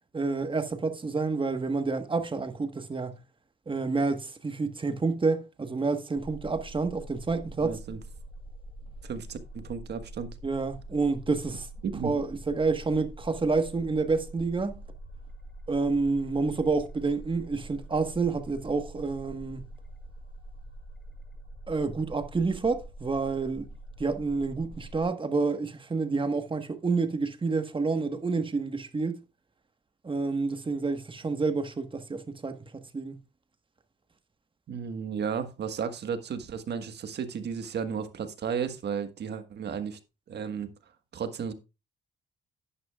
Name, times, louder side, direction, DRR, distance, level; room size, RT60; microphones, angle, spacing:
voice 1, 0.1-3.2 3.7-7.8 10.4-11.7 12.0-14.7 15.7-19.7 21.7-23.7 24.0-29.2 30.0-33.2, right 4 dB, 25° right, 1.4 m, -29 dB
sound 1, 6.2-25.1, right 1 dB, 5° left, 5.5 m, -45 dB
voice 2, 7.6-8.0 9.0-10.3 11.8-12.1 34.7-40.0 40.3-40.7 41.1-41.5, right 7 dB, 60° right, 1.5 m, -33 dB
10.5 x 10.0 x 2.4 m
cardioid pair, 90°, 20 cm